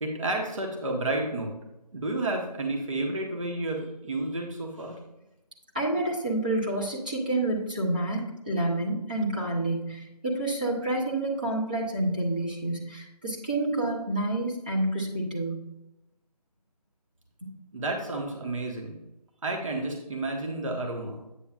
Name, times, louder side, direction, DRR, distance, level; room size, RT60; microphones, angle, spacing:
voice 1, 0.0-1.5 1.9-5.0 17.7-19.0 19.4-21.2, right 2 dB, 50° right, 1 dB, 1.2 m, -31 dB
voice 2, 5.7-15.7 17.4-17.5, right 1 dB, 15° right, -4 dB, 0.6 m, -28 dB
8.6 x 6.8 x 2.4 m, 0.94 s
figure-of-eight pair, 165°, 21 cm